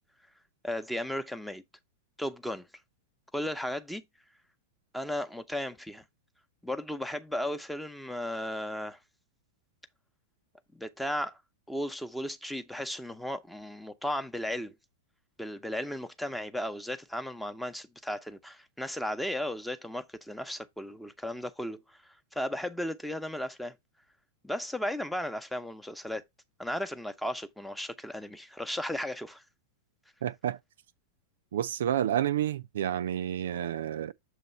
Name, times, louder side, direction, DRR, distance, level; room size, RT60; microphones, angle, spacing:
voice 1, 0.6-1.6 2.2-2.7 3.3-4.0 4.9-6.0 6.6-9.0 10.7-11.4 11.7-14.7 15.4-22.0 22.3-23.7 24.4-26.2 26.6-29.4, left 1 dB, 5° left, 0.8 m, -35 dB
voice 2, 30.2-30.6 31.5-34.1, right 10 dB, 65° right, 0.3 m, -30 dB
6.9 x 3.0 x 5.4 m
figure-of-eight pair, 95°, 0 cm